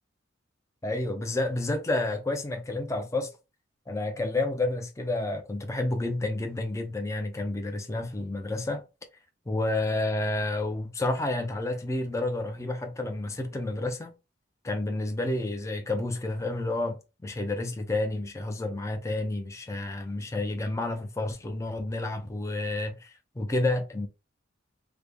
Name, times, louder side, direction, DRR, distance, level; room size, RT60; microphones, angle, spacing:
voice 1, 0.8-3.3 3.9-8.8 9.5-14.1 14.6-24.1, left 2 dB, 15° left, 0.4 m, -30 dB
3.5 x 2.0 x 3.3 m
head